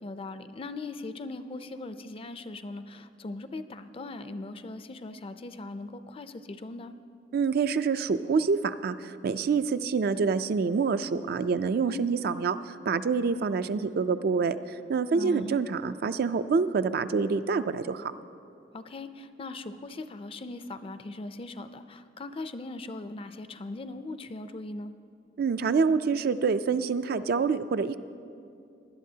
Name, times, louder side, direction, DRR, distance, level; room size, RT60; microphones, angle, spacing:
voice 1, 0.0-6.9 11.8-12.1 15.1-15.6 18.7-24.9, left 2 dB, 30° left, 11 dB, 0.4 m, -39 dB
voice 2, 7.3-14.6 14.9-18.1 25.4-28.0, right 5 dB, 60° right, 12 dB, 0.4 m, -26 dB
19.0 x 11.5 x 2.8 m, 2.5 s
head